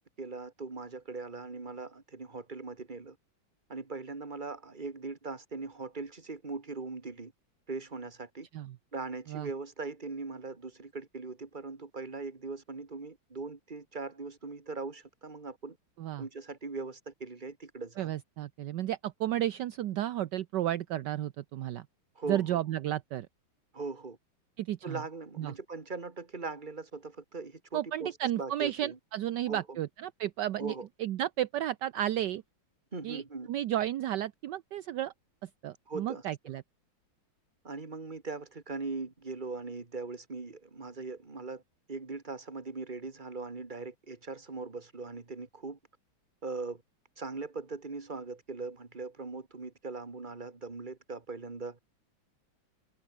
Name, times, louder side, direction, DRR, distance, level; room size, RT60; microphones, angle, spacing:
voice 1, 0.0-3.2 3.7-7.3 7.7-8.5 8.9-15.8 16.2-18.1 22.2-22.6 23.7-24.2 24.8-29.0 29.5-29.8 30.6-30.9 32.9-33.5 35.9-36.2 37.6-41.6 41.9-45.8 46.4-46.8 47.2-51.8, right 3 dB, 25° right, 2.4 m, -40 dB
voice 2, 18.0-21.9 22.3-23.3 24.6-25.0 25.4-25.5 27.7-32.4 33.0-33.2 33.5-35.1 35.4-36.6, right 12 dB, 70° right, 1.3 m, -33 dB
omnidirectional pair, 2.1 m